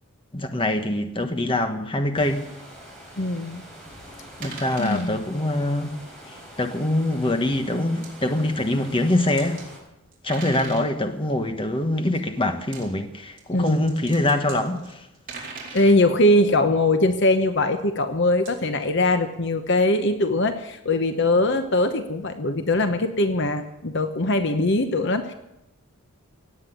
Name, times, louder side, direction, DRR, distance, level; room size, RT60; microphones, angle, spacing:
voice 1, 0.3-2.5 4.4-6.0 6.3-9.6 10.2-15.1, left 1 dB, 25° left, 6 dB, 1.4 m, -24 dB
sound 1, 2.1-9.8, equal, 5° left, 5.0 m, -44 dB
voice 2, 3.2-3.6 4.8-5.2 10.6-10.8 13.5-13.8 15.7-25.3, left 2 dB, 55° left, 8 dB, 1.0 m, -21 dB
sound 2, 4.4-5.1 7.1-7.3 8.0-8.1 9.0-9.7 10.1-10.9 12.6-12.9 13.4-16.0 18.5-18.6, right 4 dB, 40° right, 4.1 m, -39 dB
18.0 x 8.1 x 9.5 m, 0.90 s
head